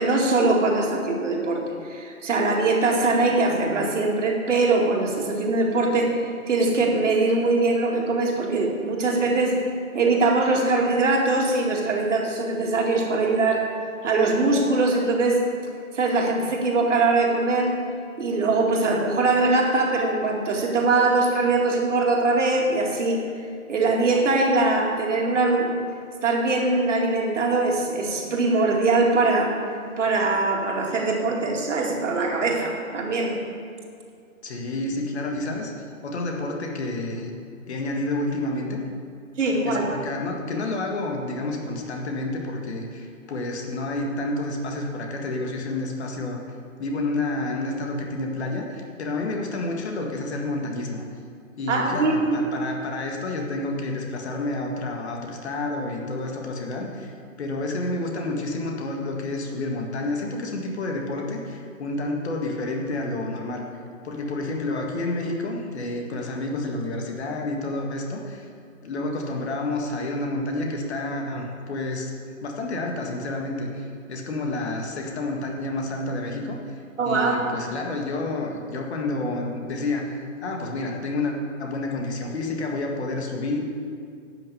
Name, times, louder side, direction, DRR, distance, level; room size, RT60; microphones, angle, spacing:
voice 1, 0.0-1.6 1.9-6.2 6.5-9.6 9.9-13.6 14.0-15.4 15.9-17.8 18.2-23.2 23.7-25.8 26.2-29.6 30.0-33.4 39.4-39.9 51.7-52.4 77.0-77.5, right 3 dB, 60° right, 0 dB, 2.3 m, -22 dB
voice 2, 34.4-35.7 36.0-37.3 37.7-38.8 39.6-46.4 46.8-51.0 51.6-63.7 64.0-68.5 68.8-72.1 72.4-76.8 77.1-83.6, left 2 dB, 50° left, 1 dB, 1.8 m, -29 dB
11.0 x 6.4 x 7.9 m, 2.3 s
figure-of-eight pair, 135°, 42 cm